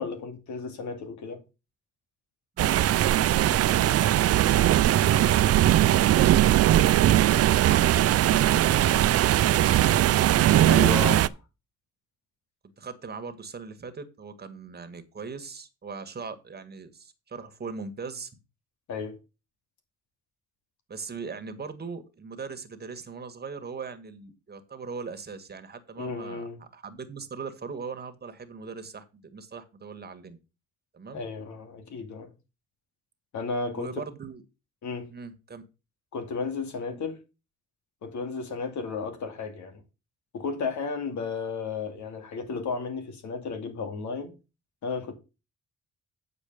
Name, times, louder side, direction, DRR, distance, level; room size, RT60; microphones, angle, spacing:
voice 1, 0.0-1.4 10.7-11.4 18.9-19.1 26.0-26.6 31.1-32.3 33.3-33.9 34.8-35.1 36.1-37.2 38.0-39.8 40.3-44.3 44.8-45.1, left 4 dB, 70° left, 2.5 m, -33 dB
voice 2, 2.6-3.9 4.8-6.3 6.6-10.1 12.8-18.3 20.9-30.4 30.9-31.2 33.7-34.4 35.1-35.6 36.9-37.0, right 5 dB, 35° right, 1.7 m, -40 dB
sound 1, 2.6-11.3, right 13 dB, 55° right, 0.5 m, -20 dB
8.4 x 4.9 x 6.5 m
cardioid pair, 90°, 30 cm